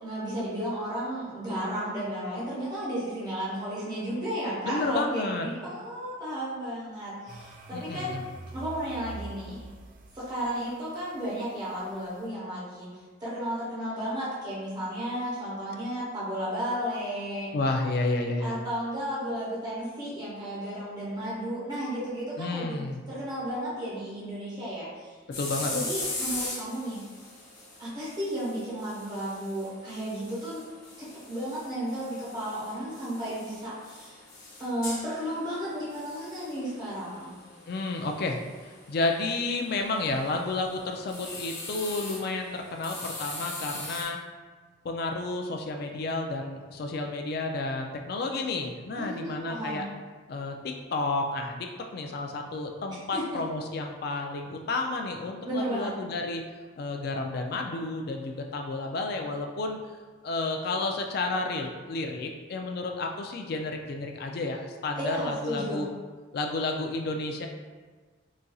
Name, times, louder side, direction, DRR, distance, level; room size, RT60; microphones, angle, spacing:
voice 1, 0.0-8.1 8.5-9.7 10.1-17.5 18.4-22.8 23.1-25.2 25.7-27.0 27.8-30.7 31.0-34.2 34.6-37.3 49.0-49.8 53.1-53.4 55.4-55.9 64.9-65.9, equal, 20° right, -8 dB, 0.8 m, -33 dB
voice 2, 4.7-5.5 7.7-8.2 17.5-18.6 22.4-23.0 25.4-25.7 37.7-44.2 44.8-49.9 50.3-56.4 56.8-59.8 60.2-65.9 66.3-67.5, left 2 dB, 50° left, 3 dB, 0.3 m, -31 dB
sound 1, 7.3-12.2, right 2 dB, 40° right, 0.3 m, -45 dB
sound 2, 25.3-44.0, left 2 dB, 65° left, 0.9 m, -41 dB
4.0 x 2.5 x 2.3 m, 1.4 s
head